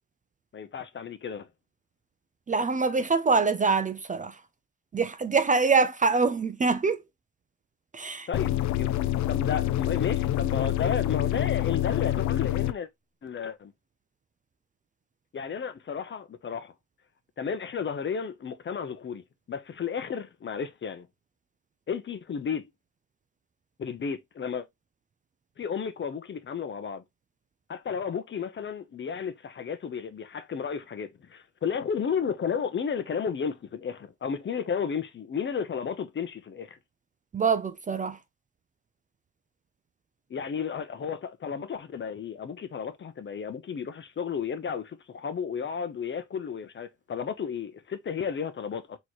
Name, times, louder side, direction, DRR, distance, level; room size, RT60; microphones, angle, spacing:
voice 1, 0.5-1.5 8.3-12.9 13.2-13.7 15.3-16.7 17.4-21.1 21.9-22.6 23.8-24.7 25.6-27.0 27.7-36.8 40.3-49.0, left 6 dB, 40° left, 0.7 m, -33 dB
voice 2, 2.5-4.4 4.9-7.0 7.9-8.3 37.3-38.2, right 4 dB, 25° right, 0.5 m, -24 dB
sound 1, 8.3-12.7, left 14 dB, 70° left, 0.5 m, -27 dB
4.1 x 3.1 x 3.0 m
cardioid pair, 90°, 30 cm